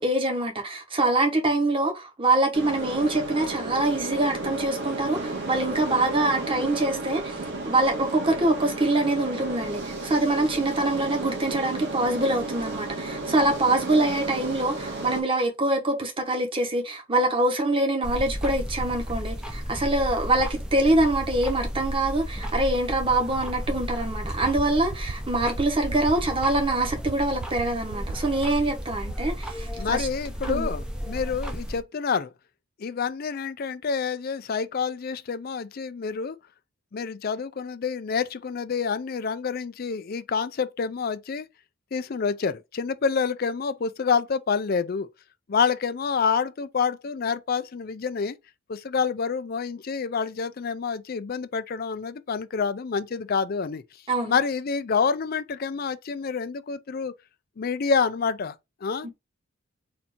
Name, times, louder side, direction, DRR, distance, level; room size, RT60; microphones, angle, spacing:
voice 1, 0.0-30.1 30.4-30.7 54.1-54.3 59.0-59.1, right 2 dB, 25° right, 1.2 m, -24 dB
sound 1, 2.5-15.2, right 2 dB, 55° right, 1.8 m, -33 dB
sound 2, 18.0-31.8, equal, 5° right, 0.6 m, -33 dB
sound 3, 24.4-24.6 24.9-25.1 25.4-25.6 25.9-26.1 26.4-26.6 26.9-27.1 27.4-27.6 27.9-28.1 28.4-28.6 28.9-29.1, right 6 dB, 75° right, 0.4 m, -36 dB
voice 2, 29.8-32.3 32.8-36.4 36.9-41.5 41.9-45.1 45.5-48.4 48.7-53.8 54.3-57.1 57.6-58.5 58.8-59.1, left 5 dB, 45° left, 0.4 m, -27 dB
4.3 x 2.7 x 4.2 m
head